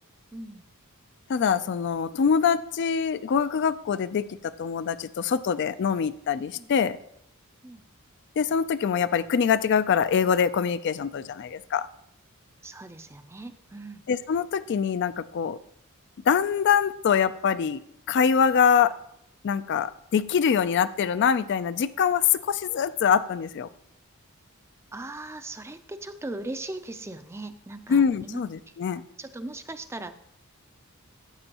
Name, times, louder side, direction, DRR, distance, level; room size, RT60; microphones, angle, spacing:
voice 1, 0.3-0.7 6.6-6.7 7.6-7.8 12.6-14.0 24.9-28.4 28.7-28.8 29.2-30.1, right 2 dB, 10° right, 10 dB, 0.4 m, -39 dB
voice 2, 1.3-4.2 4.6-7.0 8.4-11.9 14.1-15.6 16.3-17.8 18.1-18.9 19.4-23.7 27.9-29.0, left 7 dB, 50° left, 15 dB, 0.3 m, -24 dB
15.0 x 7.0 x 2.9 m, 0.75 s
head